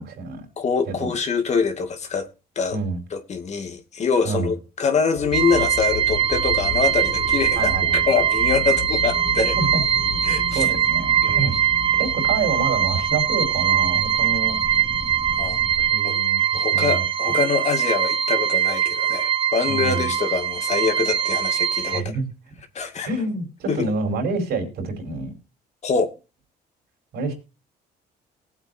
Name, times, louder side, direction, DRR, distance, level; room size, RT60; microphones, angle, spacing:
voice 1, 0.0-0.4 0.9-1.1 2.7-3.0 4.2-4.5 7.6-8.0 9.4-9.8 10.3-11.6 11.9-14.6 15.9-16.4 16.7-17.0 19.7-20.1 21.8-22.2 23.0-25.3 27.1-27.3, right 4 dB, 70° right, 4.7 m, -27 dB
voice 2, 0.6-2.3 2.6-2.8 3.1-9.5 10.2-10.7 11.2-11.5 15.4-15.6 16.0-16.2 16.5-22.2 22.7-23.1 23.7-23.9 25.8-26.1, left 5 dB, 40° left, 2.2 m, -24 dB
sound 1, 5.1-15.9, left 5 dB, 15° left, 2.6 m, -34 dB
sound 2, 5.3-22.0, right 9 dB, 30° right, 0.7 m, -22 dB
19.5 x 8.1 x 2.7 m
cardioid pair, 110°, 17 cm